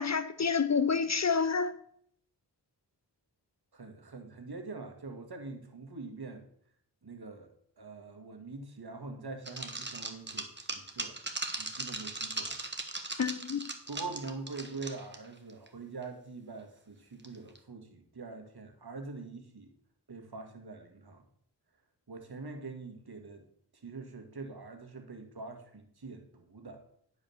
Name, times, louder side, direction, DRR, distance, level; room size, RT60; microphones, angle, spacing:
voice 1, 0.0-1.7 13.2-13.7, left 5 dB, 40° left, 0.6 m, -28 dB
voice 2, 3.7-6.5 7.0-7.5 7.8-11.1 11.6-12.6 13.9-19.7 20.1-21.2 22.1-23.4 23.7-26.8, right 3 dB, 65° right, 1.8 m, -44 dB
sound 1, 9.4-15.2 15.5-15.7 16.0-16.1 17.2-17.6, right 3 dB, 25° right, 1.3 m, -38 dB
10.0 x 5.0 x 7.0 m
wide cardioid pair, 55°, 41 cm